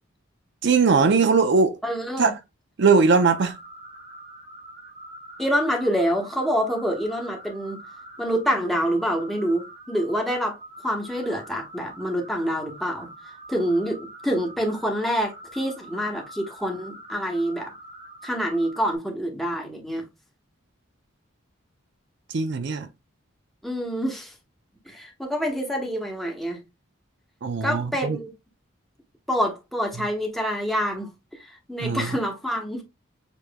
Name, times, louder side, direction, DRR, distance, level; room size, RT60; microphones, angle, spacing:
voice 1, 0.6-1.8 2.2-2.4 2.8-3.6 22.3-22.9 27.4-28.2 31.8-32.2, right 4 dB, 60° right, 0.5 m, -20 dB
voice 2, 1.8-2.3 5.4-7.8 8.2-10.6 10.8-17.7 18.2-20.0 23.6-24.3 24.9-26.6 27.6-28.3 29.3-32.8, equal, ahead, 1.0 m, -26 dB
sound 1, 3.1-19.0, right 1 dB, 30° right, 0.9 m, -44 dB
6.8 x 3.0 x 2.2 m
head